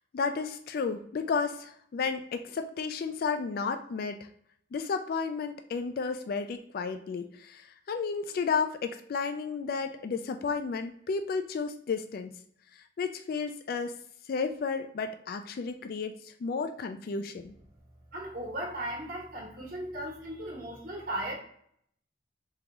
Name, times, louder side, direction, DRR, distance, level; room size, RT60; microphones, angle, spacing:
voice 1, 0.1-4.3 4.7-12.3 12.7-14.0 14.3-17.5, left 5 dB, 55° left, 7 dB, 0.3 m, -32 dB
voice 2, 18.1-21.3, right 1 dB, 55° right, -2 dB, 1.2 m, -36 dB
3.8 x 3.5 x 2.9 m, 0.66 s
head